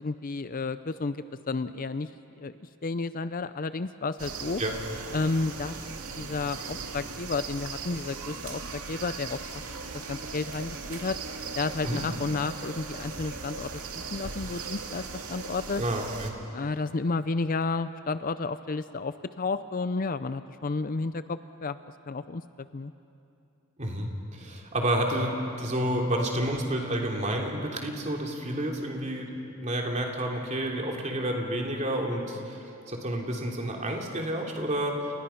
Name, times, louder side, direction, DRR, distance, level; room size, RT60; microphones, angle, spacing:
voice 1, 0.0-2.1 2.4-2.5 2.8-4.6 5.1-5.8 6.2-9.6 9.9-11.2 11.5-15.8 16.5-21.8 22.1-22.9, left 3 dB, 40° left, 12 dB, 0.5 m, -32 dB
sound 1, 4.2-16.3, right 4 dB, 75° right, 2.2 m, -38 dB
voice 2, 15.7-16.3 23.8-35.0, right 1 dB, 30° right, 0 dB, 3.0 m, -30 dB
29.5 x 29.0 x 5.8 m, 2.7 s
head